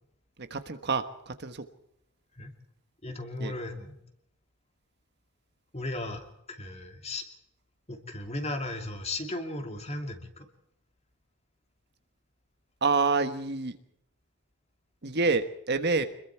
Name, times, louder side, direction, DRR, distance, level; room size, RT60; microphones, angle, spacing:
voice 1, 0.4-1.6 3.4-3.5 12.8-13.8 15.0-16.0, right 4 dB, 50° right, 9 dB, 1.4 m, -27 dB
voice 2, 3.0-4.0 5.7-7.2 7.9-10.5, left 2 dB, 30° left, 5 dB, 2.6 m, -36 dB
26.0 x 21.5 x 4.6 m, 0.77 s
head